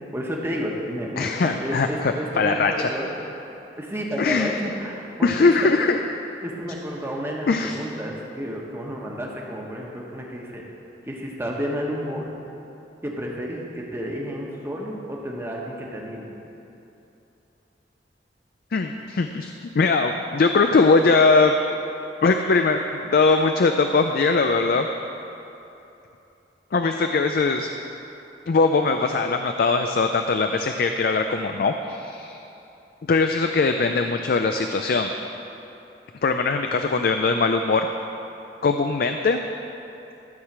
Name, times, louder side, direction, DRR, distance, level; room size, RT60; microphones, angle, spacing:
voice 1, 0.1-3.1 3.8-5.5 6.4-10.6 11.0-12.2 13.0-16.3, equal, 15° right, -2 dB, 1.3 m, -31 dB
voice 2, 1.2-2.9 4.2-4.5 5.2-6.0 7.5-7.8 18.7-21.5 22.2-24.9 26.7-27.7 28.5-32.4 33.1-35.1 36.2-37.9 38.6-39.4, left 4 dB, 55° left, 6 dB, 0.4 m, -21 dB
13.0 x 4.8 x 7.4 m, 2.9 s
head